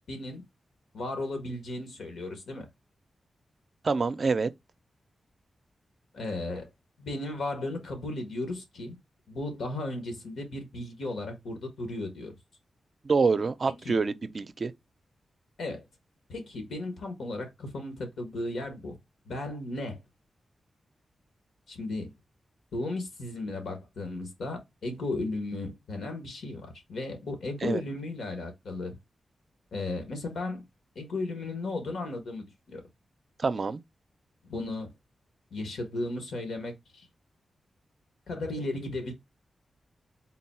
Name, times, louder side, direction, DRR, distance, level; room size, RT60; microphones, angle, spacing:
voice 1, 0.1-0.4 0.9-2.7 6.1-6.7 7.0-8.9 9.3-12.3 13.7-14.0 15.6-15.8 16.3-19.0 19.2-20.0 21.7-22.1 22.7-29.0 29.7-30.6 30.9-32.8 34.5-34.9 35.5-37.1 38.3-39.1, left 2 dB, 85° left, 1.4 m, -35 dB
voice 2, 3.8-4.5 13.0-14.7 27.6-27.8 33.4-33.8, right 4 dB, 50° right, 0.4 m, -26 dB
3.9 x 2.3 x 4.2 m
cardioid pair, 75°, 0 cm